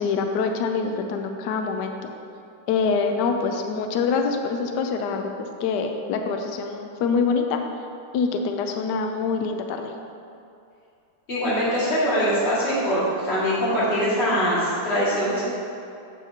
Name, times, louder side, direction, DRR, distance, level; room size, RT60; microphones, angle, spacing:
voice 1, 0.0-2.0 2.7-7.6 8.1-9.9, left 5 dB, 75° left, 4 dB, 1.0 m, -25 dB
voice 2, 11.3-15.4, equal, 30° left, -9 dB, 2.2 m, -23 dB
8.2 x 8.1 x 2.8 m, 2.7 s
omnidirectional pair, 2.3 m